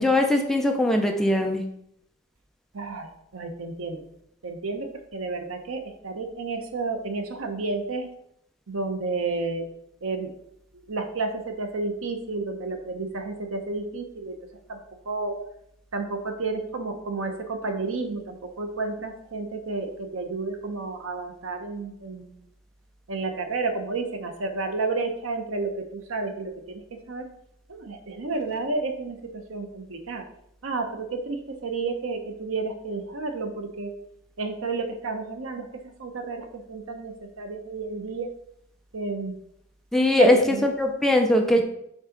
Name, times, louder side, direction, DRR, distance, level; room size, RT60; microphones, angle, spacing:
voice 1, 0.0-1.6 39.9-41.6, left 1 dB, ahead, 2 dB, 0.6 m, -21 dB
voice 2, 2.7-4.0 4.4-8.1 8.7-9.7 10.0-10.3 10.9-14.3 14.7-14.8 15.1-15.3 15.9-22.3 23.1-27.2 27.7-30.2 30.6-33.9 34.4-38.3 38.9-39.4 40.2-40.7, right 3 dB, 90° right, 5 dB, 0.9 m, -31 dB
5.4 x 3.7 x 5.1 m, 0.75 s
head